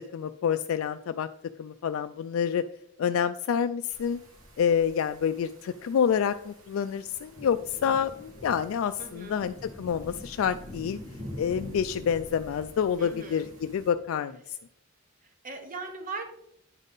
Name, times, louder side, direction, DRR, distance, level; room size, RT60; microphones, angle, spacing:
voice 1, 0.1-1.3 1.6-2.6 3.0-4.2 4.6-11.0 11.4-14.4, left 7 dB, 80° left, 9 dB, 0.3 m, -28 dB
sound 1, 3.9-13.9, left 1 dB, 80° right, 2.2 m, -45 dB
voice 2, 9.0-9.4 13.0-13.5 15.4-16.2, right 3 dB, 40° right, 4 dB, 1.3 m, -39 dB
9.2 x 4.0 x 5.3 m, 0.76 s
head